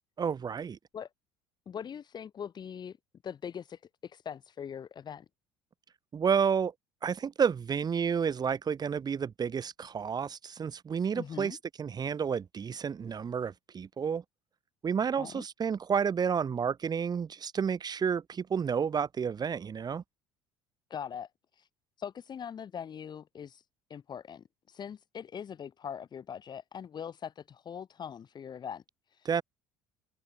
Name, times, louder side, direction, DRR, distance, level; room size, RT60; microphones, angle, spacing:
voice 1, 0.2-0.8 6.1-6.7 7.0-14.2 14.8-20.0 29.2-29.4, right 7 dB, 35° right, 2.6 m, -30 dB
voice 2, 1.7-3.0 3.2-5.2 11.1-11.6 15.2-15.4 20.9-21.7 22.0-23.6 23.9-29.3, left 8 dB, 35° left, 1.5 m, -42 dB
hypercardioid pair, 60°, 12 cm